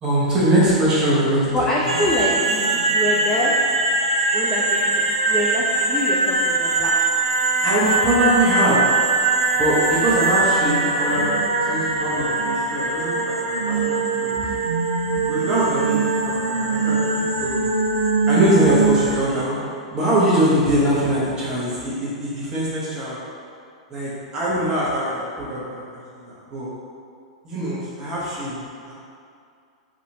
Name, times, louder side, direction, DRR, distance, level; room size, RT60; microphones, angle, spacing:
voice 1, 0.0-1.5 1.8-1.9 7.6-8.8 9.5-14.6 15.2-16.3 16.7-17.7 18.3-19.6 19.9-23.2 23.9-25.8 26.1-26.7 27.4-28.6 28.9-29.0, right 1 dB, 20° right, -8 dB, 0.7 m, -22 dB
voice 2, 1.5-3.5 4.3-7.0, left 1 dB, 10° left, -6 dB, 0.3 m, -25 dB
sound 1, 1.9-19.2, right 3 dB, 75° right, 0.3 m, -21 dB
2.8 x 2.5 x 2.7 m, 2.3 s
figure-of-eight pair, 100°, 3 cm